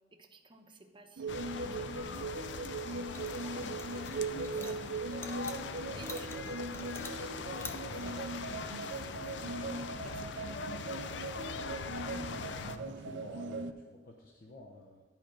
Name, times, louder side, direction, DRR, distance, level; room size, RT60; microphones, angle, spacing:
voice 1, 0.1-5.2 5.9-6.3 7.0-10.7, right 2 dB, 25° right, 4 dB, 0.8 m, -55 dB
sound 1, 1.2-13.7, right 3 dB, 75° right, 0.5 m, -40 dB
sound 2, 1.3-12.8, left 5 dB, 75° left, 0.5 m, -42 dB
sound 3, 3.1-8.2, left 2 dB, 15° left, 0.6 m, -49 dB
voice 2, 12.5-15.0, left 1 dB, 50° left, 1 dB, 0.8 m, -50 dB
11.0 x 5.1 x 6.2 m, 1.3 s
head